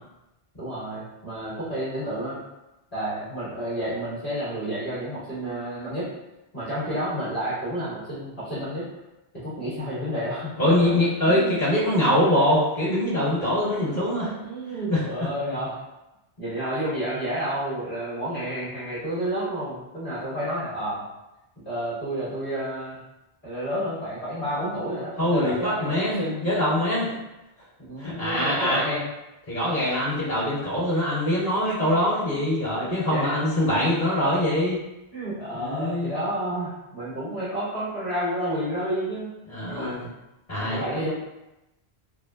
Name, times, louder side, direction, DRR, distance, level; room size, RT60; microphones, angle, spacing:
voice 1, 0.6-2.4 2.9-6.1 6.5-8.9 9.3-10.5 11.2-11.6 13.9-14.0 14.2-15.8 16.4-21.1 21.5-23.0 23.4-26.5 27.8-29.1 32.8-33.4 35.1-39.3 39.7-40.0 40.6-41.1, right 1 dB, 55° left, -14 dB, 1.6 m, -30 dB
voice 2, 10.6-14.3 14.9-15.0 25.2-27.1 28.0-29.0 29.5-34.8 35.5-36.1 39.5-40.1 40.5-40.9, left 1 dB, 35° left, -16 dB, 1.7 m, -23 dB
4.2 x 2.0 x 2.3 m, 0.97 s
omnidirectional pair, 1.1 m